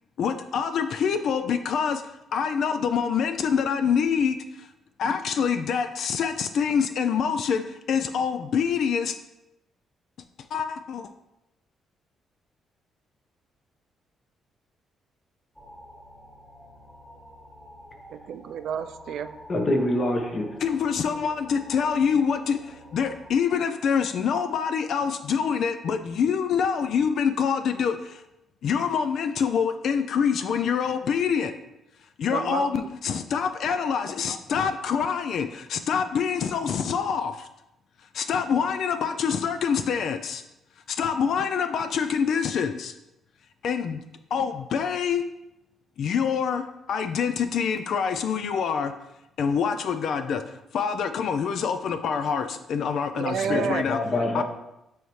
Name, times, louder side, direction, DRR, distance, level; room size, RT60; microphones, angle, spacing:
voice 1, 0.2-2.0 2.3-4.7 5.0-9.2 10.5-11.1 20.6-28.2 28.6-31.5 32.2-37.5 38.1-40.4 40.9-42.9 43.6-44.0 44.3-45.3 46.0-48.9 49.4-50.4 50.7-54.0 54.3-54.4, left 6 dB, 65° left, 9 dB, 0.4 m, -26 dB
sound 1, 15.6-23.3, equal, 10° left, 1.0 m, -47 dB
voice 2, 18.1-19.3 32.3-32.9 53.1-53.8, right 8 dB, 75° right, 10 dB, 0.3 m, -30 dB
voice 3, 19.5-20.6 53.4-54.4, left 1 dB, 40° left, 3 dB, 1.1 m, -26 dB
8.8 x 3.5 x 3.1 m, 0.88 s
cardioid pair, 90°, 0 cm